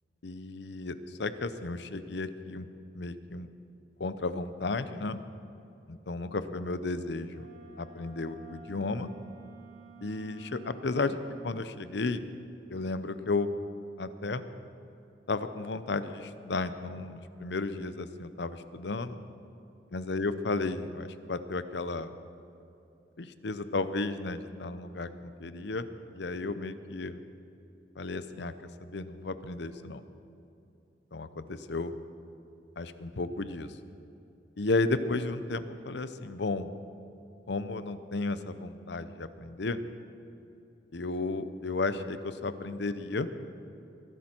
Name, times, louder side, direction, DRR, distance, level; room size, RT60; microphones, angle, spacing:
voice 1, 0.2-2.7 2.9-3.5 4.0-5.2 5.9-7.5 7.8-9.1 10.0-11.2 11.4-12.3 12.7-13.5 14.0-14.4 15.3-19.2 19.9-22.1 23.2-27.2 28.0-28.5 28.8-30.0 31.1-31.9 32.8-33.8 34.6-36.7 37.5-39.8 40.9-43.3, left 3 dB, 65° left, 12 dB, 0.7 m, -33 dB
Wind instrument woodwind instrument, 7.3-11.7, right 5 dB, 90° right, 3.4 m, -52 dB
22.0 x 12.0 x 4.5 m, 2.7 s
head